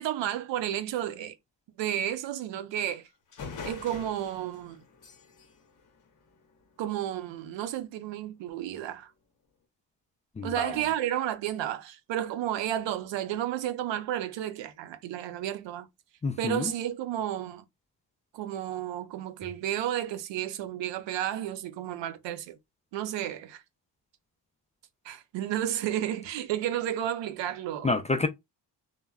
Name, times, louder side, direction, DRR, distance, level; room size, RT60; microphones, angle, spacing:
voice 1, 0.0-1.4 1.8-3.1 3.7-4.8 6.8-9.1 10.4-15.9 16.4-17.6 18.3-22.6 22.9-23.6 25.0-27.9, right 11 dB, 80° right, 0.6 m, -32 dB
sound 1, 2.9-3.0 3.3-6.8, left 5 dB, 45° left, 0.8 m, -44 dB
voice 2, 10.4-10.8 16.2-16.7 27.8-28.3, left 3 dB, 20° left, 0.3 m, -28 dB
3.3 x 2.1 x 2.2 m
cardioid pair, 80°, 43 cm